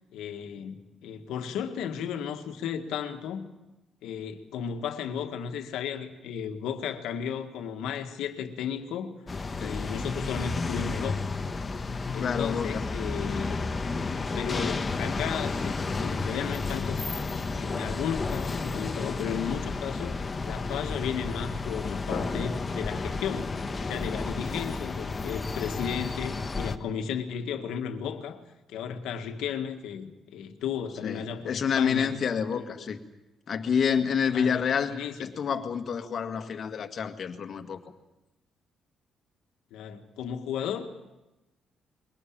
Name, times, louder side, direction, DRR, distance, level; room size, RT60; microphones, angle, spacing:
voice 1, 0.1-3.5 4.0-9.1 9.6-11.3 11.9-13.6 14.2-23.5 23.8-28.4 28.7-32.1 32.5-32.6 34.3-35.3 39.7-40.9, left 7 dB, 90° left, 6 dB, 1.8 m, -34 dB
sound 1, 9.3-26.8, left 3 dB, 30° left, 1.4 m, -32 dB
voice 2, 12.2-12.9 13.5-13.7 31.0-33.0 33.5-37.8, left 7 dB, 55° left, 6 dB, 1.9 m, -28 dB
22.5 x 18.5 x 8.8 m, 1.0 s
cardioid pair, 90°, 0 cm